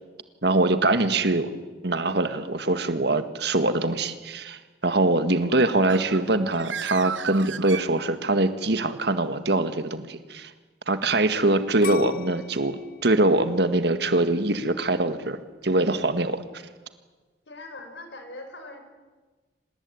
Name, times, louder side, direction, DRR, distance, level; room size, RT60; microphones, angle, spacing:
voice 1, 0.4-1.5 1.8-10.5 10.9-16.6, right 2 dB, 60° right, 10 dB, 1.8 m, -23 dB
Bird, 5.4-8.5, right 7 dB, 90° right, 0.8 m, -35 dB
sound 1, 11.8-14.7 15.2-15.7, left 6 dB, 50° left, 1.3 m, -39 dB
voice 2, 17.5-18.8, left 2 dB, 70° left, 6 dB, 4.9 m, -41 dB
26.0 x 19.5 x 9.7 m, 1.3 s
head